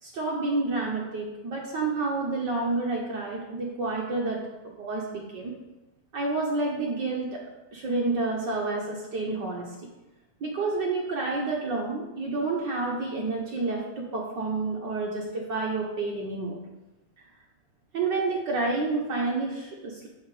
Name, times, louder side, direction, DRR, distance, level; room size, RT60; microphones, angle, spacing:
voice 1, 0.0-5.5 6.1-7.4 7.7-9.7 10.4-16.6 17.9-20.1, right 3 dB, 75° right, -2 dB, 1.0 m, -29 dB
11.5 x 4.2 x 4.8 m, 1.0 s
omnidirectional pair, 3.4 m